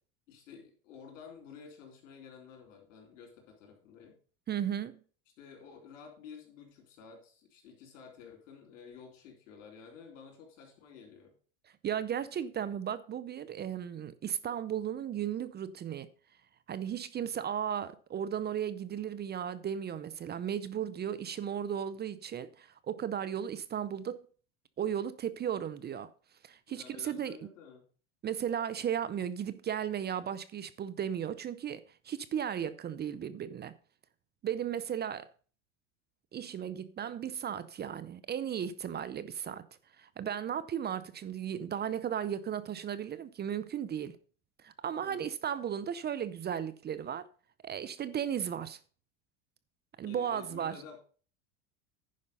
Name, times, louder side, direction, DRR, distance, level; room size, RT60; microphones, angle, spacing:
voice 1, 0.3-4.2 5.4-11.3 26.7-27.8 44.9-45.3 50.0-51.0, left 6 dB, 80° left, 4.1 m, -52 dB
voice 2, 4.5-5.0 11.8-16.1 16.7-24.3 24.8-26.1 26.4-27.4 28.2-33.7 34.4-35.3 36.3-39.7 40.0-44.2 44.6-47.3 47.6-48.8 50.0-50.8, right 9 dB, 25° right, 0.6 m, -35 dB
10.0 x 5.3 x 5.4 m
supercardioid pair, 100°, 37 cm